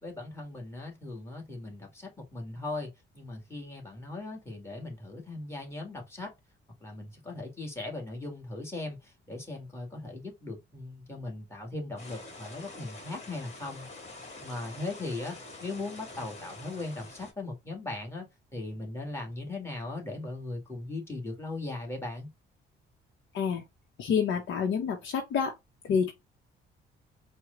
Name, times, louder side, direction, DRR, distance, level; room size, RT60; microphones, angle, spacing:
voice 1, 0.0-6.3 6.8-13.9 14.4-18.2 18.5-22.3, left 2 dB, 15° left, 1.8 m, -38 dB
sound 1, 12.0-17.3, left 2 dB, 35° left, 1.8 m, -46 dB
voice 2, 24.0-25.5 25.8-26.1, left 6 dB, 75° left, 0.8 m, -28 dB
4.5 x 2.2 x 3.8 m
cardioid pair, 90°, 20 cm